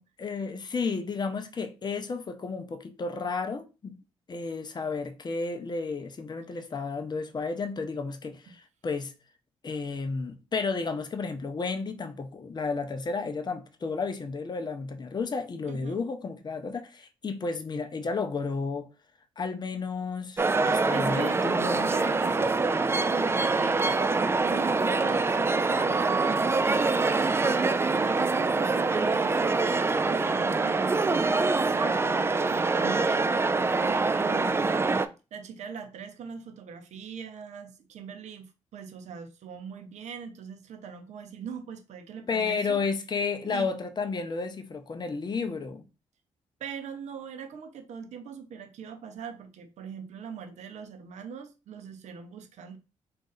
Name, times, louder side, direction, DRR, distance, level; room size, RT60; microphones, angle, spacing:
voice 1, 0.2-4.0 4.3-9.1 9.6-18.9 19.4-21.9 42.3-45.8, left 4 dB, 35° left, 0.6 m, -32 dB
voice 2, 15.7-16.0 20.7-21.4 21.9-26.9 27.2-34.8 35.3-42.8 43.4-43.7 46.6-52.8, right 6 dB, 65° right, 0.7 m, -41 dB
sound 1, 20.4-35.1, right 3 dB, 20° right, 0.3 m, -25 dB
2.6 x 2.4 x 3.9 m
supercardioid pair, 55°, 13 cm